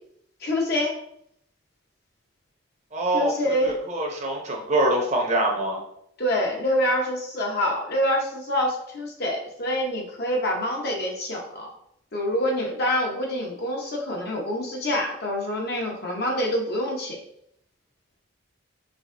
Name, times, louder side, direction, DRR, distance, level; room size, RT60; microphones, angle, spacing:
voice 1, 0.4-1.0 3.1-3.8 6.2-11.7 12.1-17.2, left 1 dB, 50° left, 0 dB, 0.8 m, -26 dB
voice 2, 2.9-3.3 3.6-5.8, right 1 dB, 35° right, 0 dB, 0.7 m, -24 dB
4.6 x 3.5 x 2.6 m, 0.72 s
head